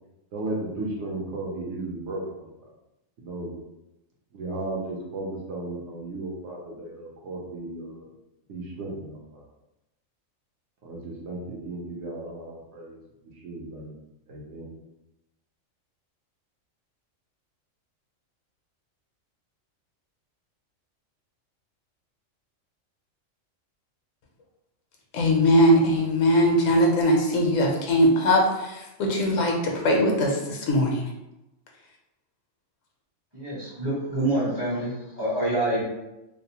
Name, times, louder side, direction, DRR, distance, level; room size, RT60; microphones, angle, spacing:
voice 1, 0.3-2.5 3.2-3.5 4.3-8.0 8.5-9.4 10.8-13.0 13.2-13.9 14.3-14.7, right 2 dB, 65° right, -3 dB, 0.9 m, -35 dB
voice 2, 25.1-31.0, equal, 75° left, 0 dB, 0.9 m, -21 dB
voice 3, 33.3-35.8, right 1 dB, 25° right, -8 dB, 0.6 m, -26 dB
2.6 x 2.0 x 2.8 m, 0.95 s
omnidirectional pair, 1.4 m